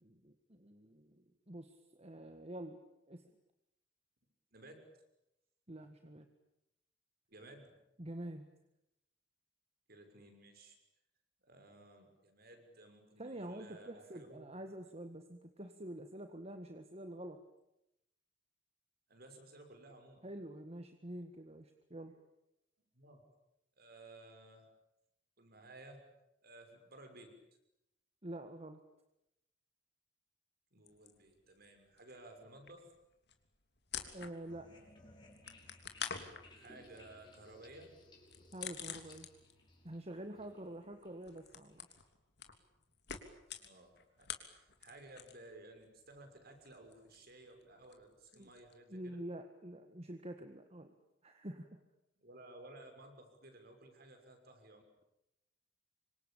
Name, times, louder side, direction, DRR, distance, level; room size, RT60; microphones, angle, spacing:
voice 1, 0.0-2.8 3.1-3.3 5.7-6.3 8.0-8.5 13.2-17.4 20.2-22.2 28.2-28.8 34.1-34.7 38.5-39.3 39.8-41.9 48.3-48.5 48.9-50.9 51.2-51.8, right 1 dB, 35° right, 7 dB, 1.8 m, -47 dB
voice 2, 4.5-4.9 7.3-7.7 9.9-10.8 11.4-14.5 19.1-20.2 22.9-23.2 23.8-24.7 25.4-26.0 26.4-27.4 30.7-32.9 36.5-37.9 43.6-44.3 44.5-49.2 52.2-54.8, right 2 dB, 55° right, 5 dB, 6.2 m, -56 dB
sound 1, 30.9-31.7 32.0-34.7 35.0-39.7 40.0-45.5 45.8-48.7, left 8 dB, 65° left, 3.2 m, -48 dB
sound 2, 34.5-42.0, left 1 dB, 25° left, 5.9 m, -62 dB
27.0 x 25.0 x 8.9 m, 0.86 s
head